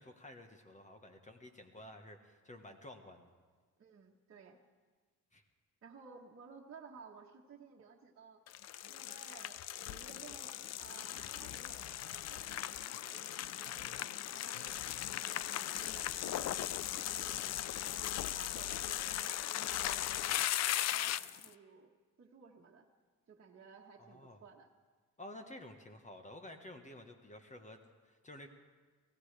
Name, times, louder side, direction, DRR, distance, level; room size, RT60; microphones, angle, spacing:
voice 1, 0.0-3.3 5.3-5.4 24.0-24.4 25.2-28.5, left 1 dB, 25° left, 5 dB, 1.3 m, -52 dB
voice 2, 3.8-4.6 5.8-8.4 8.9-9.6 9.9-18.0 18.3-21.9 22.2-22.9 23.3-24.7, right 5 dB, 45° right, -2 dB, 1.4 m, -57 dB
sound 1, 8.5-21.5, left 12 dB, 60° left, 0.5 m, -38 dB
23.5 x 16.5 x 3.4 m, 1.4 s
cardioid pair, 90°, 30 cm